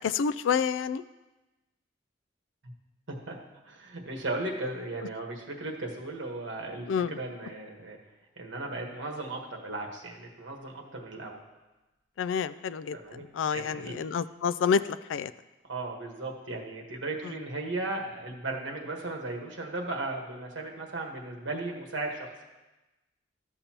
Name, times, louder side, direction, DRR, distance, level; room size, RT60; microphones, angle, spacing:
voice 1, 0.0-1.0 6.9-7.1 12.2-13.0 13.3-14.8 15.1-15.3, left 6 dB, 80° left, 16 dB, 0.3 m, -28 dB
voice 2, 3.6-8.0 8.4-11.4 12.9-13.2 13.5-14.0 15.6-22.3, right 2 dB, 80° right, 1 dB, 1.4 m, -36 dB
13.0 x 6.7 x 2.9 m, 1.1 s
head